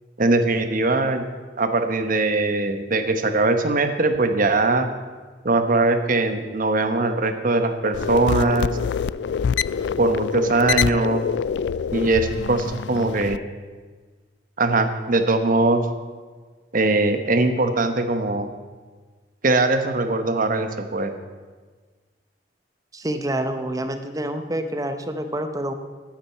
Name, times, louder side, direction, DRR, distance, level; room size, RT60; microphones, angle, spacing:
voice 1, 0.2-1.2 1.6-4.9 5.4-8.7 10.0-11.2 11.9-13.4 14.6-15.9 16.7-18.5 19.4-21.1, right 2 dB, 50° right, 8 dB, 1.0 m, -21 dB
sound 1, 7.9-13.4, left 7 dB, 75° left, 0.3 m, -26 dB
voice 2, 22.9-25.7, right 1 dB, 20° right, 8 dB, 0.9 m, -27 dB
10.0 x 8.9 x 8.3 m, 1.4 s
head